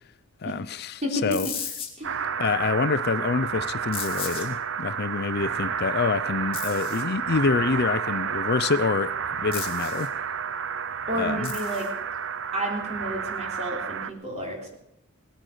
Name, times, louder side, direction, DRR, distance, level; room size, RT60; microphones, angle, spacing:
voice 1, 0.4-1.5 2.4-10.1 11.2-11.5, left 4 dB, 50° left, 0.5 m, -26 dB
voice 2, 1.0-1.4 2.0-2.2 11.1-11.9 12.5-14.7, equal, 30° right, 3.7 m, -31 dB
sound 1, 1.3-1.9 3.9-4.5 6.5-7.0 9.5-10.1 11.4-11.9, left 7 dB, 25° left, 2.8 m, -35 dB
sound 2, 2.0-14.1, right 7 dB, 60° right, 0.6 m, -30 dB
18.5 x 10.0 x 6.7 m
head